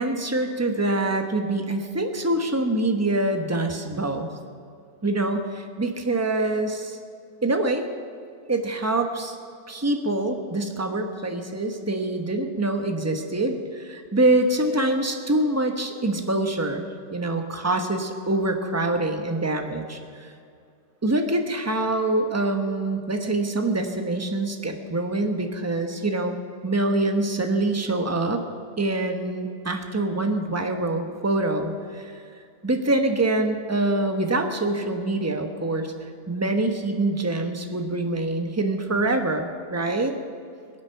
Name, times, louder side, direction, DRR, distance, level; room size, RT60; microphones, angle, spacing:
voice 1, 0.0-4.3 5.0-7.0 7.4-7.9 8.5-9.4 9.7-20.3 21.0-26.4 26.6-28.4 28.8-32.1 32.6-35.9 36.3-40.1, right 2 dB, 10° right, 5 dB, 0.8 m, -25 dB
22.5 x 8.9 x 5.7 m, 2.4 s
omnidirectional pair, 1.8 m